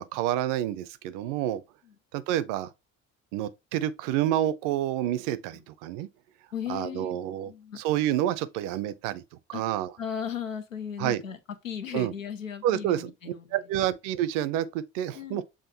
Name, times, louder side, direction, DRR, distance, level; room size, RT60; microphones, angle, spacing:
voice 1, 0.0-1.6 2.1-2.7 3.3-6.1 6.7-7.5 7.8-9.2 9.5-9.9 11.0-11.2 11.9-12.1 12.6-13.1 13.5-15.4, right 12 dB, 55° right, 0.6 m, -28 dB
voice 2, 6.5-7.2 7.5-7.8 9.5-9.6 10.0-11.4 11.6-13.6 15.1-15.4, left 8 dB, 90° left, 0.6 m, -36 dB
7.1 x 2.5 x 2.8 m
figure-of-eight pair, 50°, 38 cm